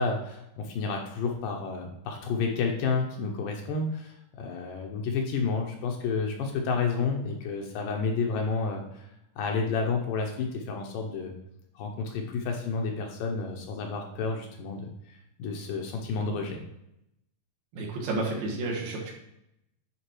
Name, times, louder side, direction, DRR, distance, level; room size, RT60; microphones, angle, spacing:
voice 1, 0.0-9.1 9.4-11.3 11.8-16.6, left 4 dB, 75° left, 2 dB, 2.2 m, -30 dB
voice 2, 17.7-19.1, right 2 dB, 75° right, -2 dB, 3.0 m, -31 dB
9.5 x 3.7 x 3.0 m, 0.82 s
omnidirectional pair, 4.2 m